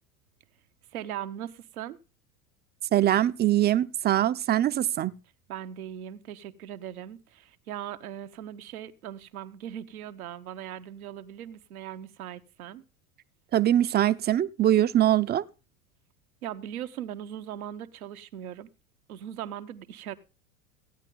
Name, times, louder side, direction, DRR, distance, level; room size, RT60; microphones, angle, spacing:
voice 1, 0.9-2.0 5.5-12.8 16.4-18.7 19.1-20.2, right 10 dB, 85° right, 1.0 m, -39 dB
voice 2, 2.9-5.1 13.5-15.4, right 12 dB, 25° right, 0.6 m, -23 dB
15.5 x 9.1 x 3.7 m
hypercardioid pair, 95°, 43 cm